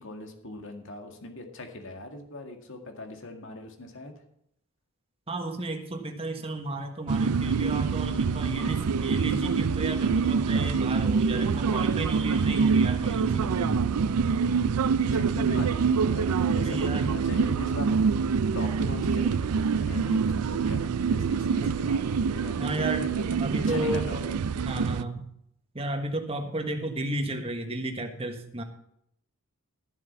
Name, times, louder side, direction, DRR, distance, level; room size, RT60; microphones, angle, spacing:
voice 1, 0.0-4.1 6.4-6.5 15.1-18.0 18.5-23.2 23.7-24.4, left 2 dB, 60° left, 4 dB, 2.0 m, -40 dB
voice 2, 5.3-13.9 16.6-17.1 22.6-23.1 23.4-24.3 24.6-25.2 25.7-28.6, right 1 dB, 25° right, 5 dB, 1.4 m, -33 dB
sound 1, 7.1-25.0, right 5 dB, 90° right, 0.4 m, -25 dB
13.0 x 7.5 x 5.7 m, 0.74 s
head